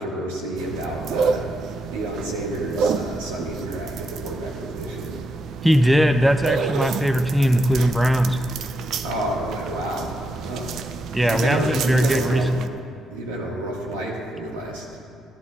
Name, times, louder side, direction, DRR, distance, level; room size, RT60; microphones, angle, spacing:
voice 1, 0.0-1.5 1.9-5.2 9.0-10.7 11.3-12.5 13.1-15.0, right 1 dB, 85° right, -3 dB, 1.8 m, -30 dB
sound 1, 0.6-12.7, right 6 dB, 60° right, 0.4 m, -30 dB
voice 2, 5.6-8.4 11.1-12.5, equal, 10° right, 9 dB, 0.4 m, -19 dB
13.5 x 11.0 x 2.4 m, 2.4 s
hypercardioid pair, 65°, 0 cm